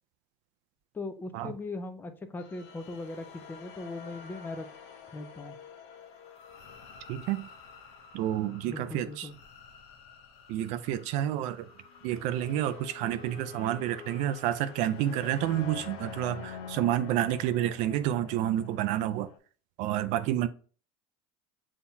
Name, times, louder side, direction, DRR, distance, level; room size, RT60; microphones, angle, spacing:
voice 1, 0.9-4.7 5.1-5.6 8.6-9.4, left 2 dB, 15° left, 0.5 m, -39 dB
sound 1, 2.4-19.4, left 6 dB, 80° left, 0.7 m, -48 dB
voice 2, 7.1-7.5 8.1-9.3 10.5-11.7 12.0-19.3 19.8-20.5, right 12 dB, 60° right, 0.4 m, -29 dB
7.0 x 2.8 x 2.2 m
supercardioid pair, 120°, 14 cm